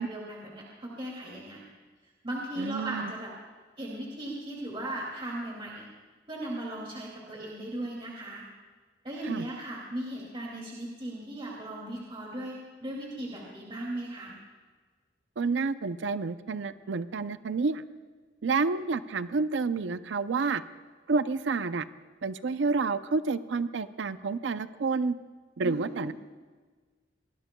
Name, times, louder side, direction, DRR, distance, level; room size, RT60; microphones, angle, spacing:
voice 1, 0.0-1.6 2.2-3.3 3.8-5.9 6.3-8.5 9.0-14.3 25.6-26.1, right 1 dB, 30° right, -3 dB, 2.4 m, -37 dB
voice 2, 2.6-3.1 9.3-9.4 15.4-17.8 18.4-20.6 21.1-21.9 22.2-25.1 25.6-26.1, right 4 dB, 75° right, 13 dB, 0.5 m, -29 dB
24.5 x 20.0 x 2.2 m, 1.4 s
head